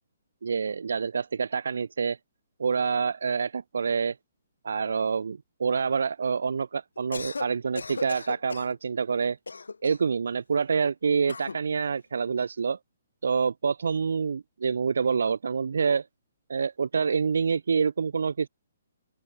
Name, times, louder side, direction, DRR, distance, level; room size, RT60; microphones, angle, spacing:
voice 1, 0.4-2.2 2.6-4.2 4.6-9.4 9.8-12.8 13.2-16.1 16.5-18.5, right 5 dB, 65° right, 3.4 m, -27 dB
Cough, 7.0-7.5 7.8-8.7 9.5-10.1 11.3-11.6, left 4 dB, 75° left, 3.1 m, -36 dB
open air
figure-of-eight pair, 130°, 0 cm